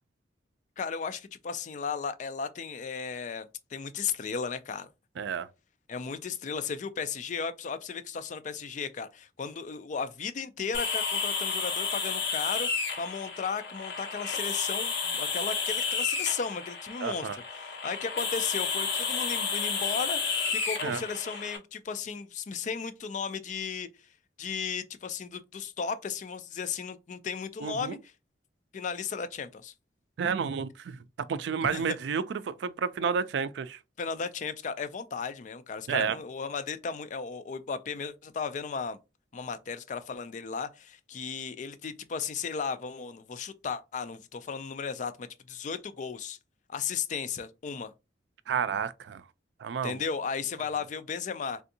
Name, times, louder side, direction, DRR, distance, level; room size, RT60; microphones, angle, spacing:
voice 1, 0.8-4.9 5.9-23.9 24.4-28.0 28.7-29.7 31.7-31.8 34.0-39.0 39.3-46.4 46.7-47.9 49.8-51.6, left 6 dB, 45° left, 0.4 m, -35 dB
voice 2, 5.2-5.5 17.0-17.4 20.8-21.0 27.6-27.9 30.2-33.8 35.9-36.2 48.5-49.2 49.6-50.0, right 6 dB, 75° right, 0.3 m, -31 dB
sound 1, 10.7-21.6, left 5 dB, 65° left, 0.8 m, -31 dB
3.5 x 2.6 x 2.7 m
head